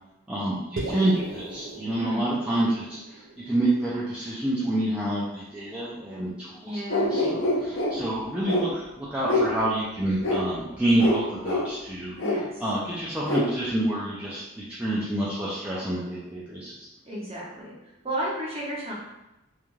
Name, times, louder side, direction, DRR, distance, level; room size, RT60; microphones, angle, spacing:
voice 1, 0.3-6.8 7.1-12.2 12.6-16.7, right 1 dB, 5° right, -9 dB, 0.3 m, -28 dB
sound 1, 0.8-5.1, right 2 dB, 80° right, 0.4 m, -39 dB
voice 2, 6.6-7.1 12.2-12.6 17.1-17.7 18.0-18.9, right 1 dB, 30° right, -5 dB, 0.8 m, -32 dB
sound 2, 6.9-7.9 8.5-8.6 9.3-9.5 10.2-10.4 11.0-11.2 11.4-11.6 12.2-12.3 13.3-13.4, left 2 dB, 75° left, 0.6 m, -24 dB
2.4 x 2.2 x 3.0 m, 0.95 s
head